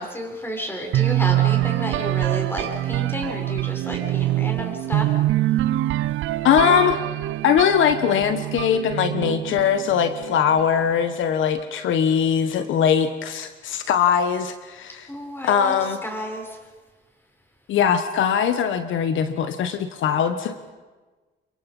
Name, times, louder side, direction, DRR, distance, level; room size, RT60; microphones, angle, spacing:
voice 1, 0.0-5.1 15.1-16.6, equal, 10° left, 2 dB, 6.5 m, -31 dB
sound 1, 0.9-10.7, right 15 dB, 80° right, 0.6 m, -24 dB
voice 2, 6.4-7.0 7.4-15.1 15.4-16.0 17.7-20.7, left 8 dB, 80° left, 9 dB, 1.3 m, -21 dB
28.5 x 23.0 x 5.5 m, 1.3 s
cardioid pair, 90°, 20 cm